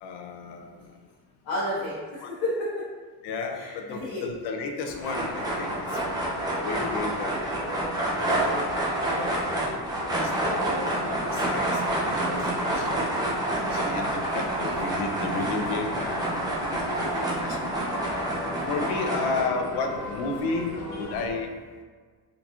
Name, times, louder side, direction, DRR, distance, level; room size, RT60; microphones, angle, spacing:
voice 1, 0.0-1.0 2.2-2.3 3.2-6.0 6.6-8.2 9.1-9.6 10.1-13.2 13.7-16.3 16.6-17.9 18.7-21.6, left 4 dB, 85° left, 3 dB, 0.6 m, -33 dB
voice 2, 1.4-2.9 3.5-4.2 8.1-8.6 10.2-10.3 14.6-14.9 16.0-16.6 18.4-18.8, left 1 dB, 65° left, -9 dB, 1.0 m, -33 dB
sound 1, 4.9-21.3, left 2 dB, 45° left, 0.5 m, -39 dB
sound 2, 5.0-19.4, right 1 dB, 10° right, 0.5 m, -28 dB
3.7 x 2.8 x 2.3 m, 1.5 s
cardioid pair, 170°, 38 cm